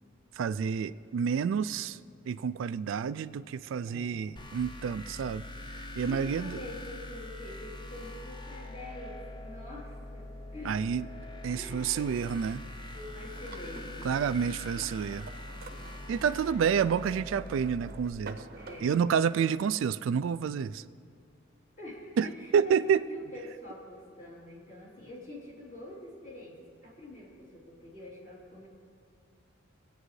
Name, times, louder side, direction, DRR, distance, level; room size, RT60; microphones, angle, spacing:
voice 1, 0.3-2.0 2.3-5.4 5.7-6.6 10.6-11.1 11.4-12.6 14.0-15.3 16.1-18.4 18.8-20.8 22.2-22.3 22.5-23.1, right 7 dB, 65° right, 14 dB, 0.3 m, -29 dB
voice 2, 3.8-4.2 6.0-10.8 11.5-11.9 12.9-14.6 16.2-16.5 18.6-19.0 21.8-28.7, left 1 dB, 40° left, -6 dB, 3.4 m, -46 dB
sound 1, 4.4-18.1, left 1 dB, 25° left, 0.6 m, -43 dB
sound 2, 12.6-19.5, right 3 dB, 50° right, 0.7 m, -49 dB
23.0 x 9.0 x 3.2 m, 2.3 s
head